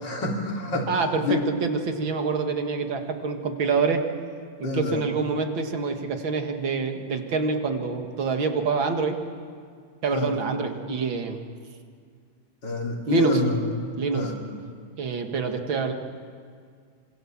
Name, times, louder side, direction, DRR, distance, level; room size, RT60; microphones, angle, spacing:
voice 1, 0.0-0.9 1.2-1.4 4.6-5.0 10.1-10.3 12.6-13.6 14.1-14.3, left 3 dB, 65° left, 0 dB, 3.9 m, -26 dB
voice 2, 0.9-4.0 4.6-9.2 10.0-11.4 13.1-13.4 14.0-14.3 15.0-15.9, right 4 dB, 85° right, 5 dB, 2.7 m, -26 dB
26.5 x 25.0 x 7.4 m, 2.1 s
omnidirectional pair, 2.1 m